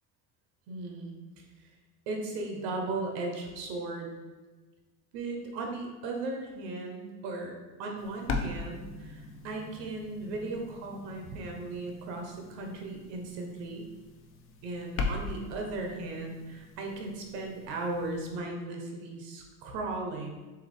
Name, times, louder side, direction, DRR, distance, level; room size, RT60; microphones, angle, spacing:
voice 1, 0.7-1.4 2.1-4.1 5.1-7.5 7.8-13.9 14.6-20.3, right 2 dB, 70° right, 2 dB, 1.0 m, -37 dB
sound 1, 8.0-18.2, left 4 dB, 30° left, 0.4 m, -40 dB
3.7 x 2.9 x 3.4 m, 1.3 s
hypercardioid pair, 85°, 50 cm